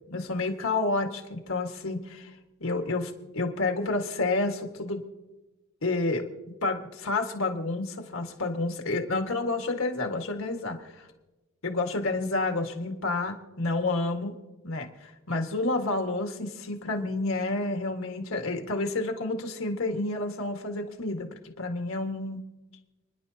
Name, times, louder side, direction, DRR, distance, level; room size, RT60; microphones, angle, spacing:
voice 1, 0.1-2.3 2.6-5.0 5.8-6.3 6.6-11.1 11.6-14.3 14.6-22.4, left 2 dB, 70° left, 4 dB, 1.8 m, -29 dB
29.5 x 10.5 x 2.9 m, 1.1 s
head